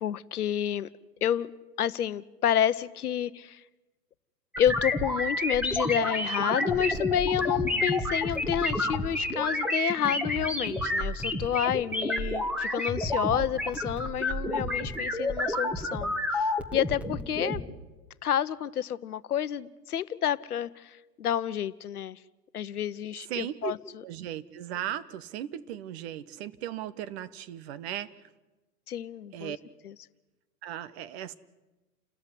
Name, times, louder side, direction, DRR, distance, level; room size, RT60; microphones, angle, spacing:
voice 1, 0.0-0.9 1.2-1.5 1.8-3.6 4.6-17.6 18.2-22.2 22.5-24.0 28.9-29.5 29.8-29.9, left 9 dB, 65° left, 15 dB, 1.0 m, -29 dB
sound 1, 4.5-17.6, left 1 dB, 5° right, 1.9 m, -30 dB
voice 2, 23.3-23.7 24.0-28.1 29.3-29.6 30.6-31.3, right 11 dB, 40° right, 14 dB, 1.3 m, -36 dB
30.0 x 14.0 x 9.8 m, 1.2 s
figure-of-eight pair, 115°, 48 cm